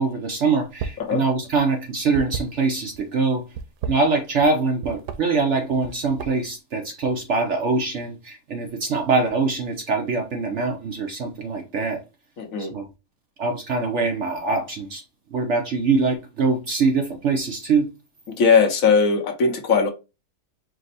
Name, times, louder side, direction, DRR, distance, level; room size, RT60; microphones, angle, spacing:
voice 1, 0.0-3.4 3.9-12.0 12.6-12.9 13.4-15.0 15.3-17.9, right 4 dB, 60° right, 0.8 m, -23 dB
sound 1, 0.7-1.1 1.4-3.0 3.5-4.5 4.8-5.2 5.7-6.5, right 6 dB, 90° right, 1.2 m, -32 dB
voice 2, 12.4-12.7 18.4-19.9, left 5 dB, 60° left, 1.1 m, -19 dB
5.1 x 2.1 x 3.9 m
omnidirectional pair, 1.7 m